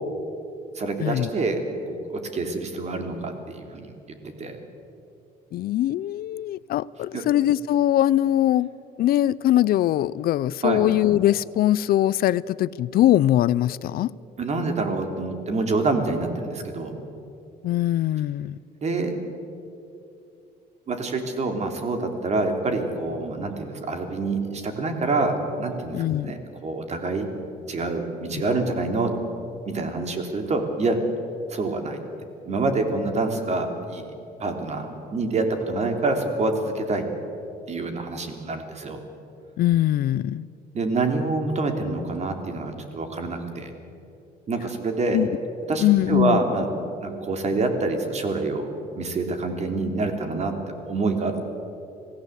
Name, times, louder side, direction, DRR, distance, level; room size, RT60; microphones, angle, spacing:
voice 1, 0.7-1.6 1.9-3.9 4.4-4.6 7.1-7.2 10.6-10.8 14.4-16.9 18.8-19.1 20.9-26.0 26.2-27.3 27.7-29.1 29.6-31.0 31.5-32.0 32.4-34.1 34.4-37.0 37.7-39.0 40.7-43.7 44.5-45.2 45.7-46.7 47.0-50.5 50.9-51.4, right 3 dB, 40° right, 5 dB, 3.3 m, -26 dB
voice 2, 5.5-8.7 9.0-14.1 17.6-18.6 25.9-26.3 28.3-28.4 39.6-40.5 45.1-45.3 45.8-46.4, left 13 dB, 60° left, 20 dB, 0.5 m, -21 dB
26.5 x 17.0 x 8.1 m, 2.7 s
cardioid pair, 110°, 17 cm